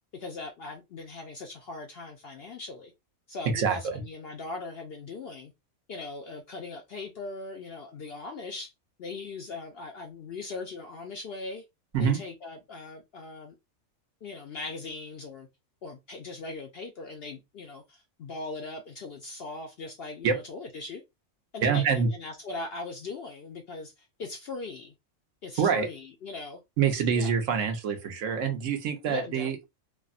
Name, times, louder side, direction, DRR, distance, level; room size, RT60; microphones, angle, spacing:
voice 1, 0.1-2.9 3.3-5.5 5.9-8.7 9.0-11.6 12.0-13.6 14.2-15.5 15.8-21.0 21.5-24.9 25.4-26.6 27.1-27.3 29.1-29.5, left 3 dB, 60° left, 0.6 m, -40 dB
voice 2, 3.5-4.0 11.9-12.2 20.2-20.4 21.6-22.1 25.6-25.9 26.8-29.6, right 6 dB, 70° right, 1.0 m, -26 dB
3.3 x 2.1 x 2.4 m
omnidirectional pair, 1.4 m